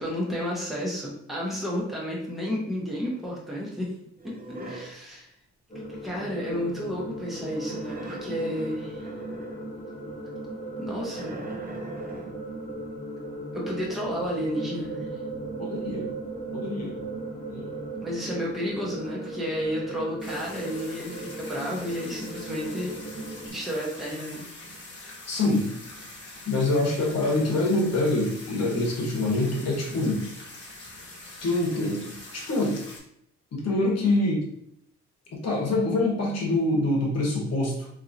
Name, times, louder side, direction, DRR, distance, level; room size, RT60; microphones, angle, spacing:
voice 1, 0.0-3.9 4.2-5.3 6.0-9.1 10.8-11.4 13.5-15.2 18.0-23.0 23.5-24.5, equal, ahead, -5 dB, 0.9 m, -32 dB
sound 1, 4.2-5.0 7.2-9.8 11.1-12.5, right 1 dB, 30° right, 0.5 m, -41 dB
sound 2, 5.7-23.5, right 2 dB, 20° left, 1.4 m, -37 dB
voice 2, 15.6-16.1 16.5-16.9 17.5-17.8 25.3-25.7 26.4-30.2 31.4-32.9 33.5-34.5 35.3-37.9, left 2 dB, 60° left, -2 dB, 1.1 m, -25 dB
sound 3, 20.2-33.0, left 2 dB, 40° left, 1.1 m, -44 dB
2.8 x 2.7 x 2.5 m, 0.73 s
cardioid pair, 90°, 30 cm